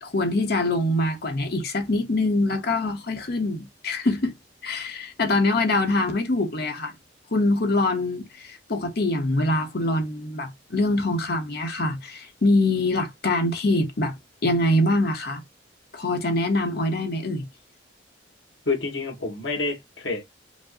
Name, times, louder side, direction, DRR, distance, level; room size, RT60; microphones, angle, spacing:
voice 1, 0.0-4.3 4.6-6.9 7.3-14.2 14.4-15.4 15.9-17.5, left 2 dB, 60° left, 1.0 m, -24 dB
voice 2, 18.7-20.2, left 3 dB, 90° left, 2.0 m, -28 dB
5.2 x 2.2 x 3.7 m
head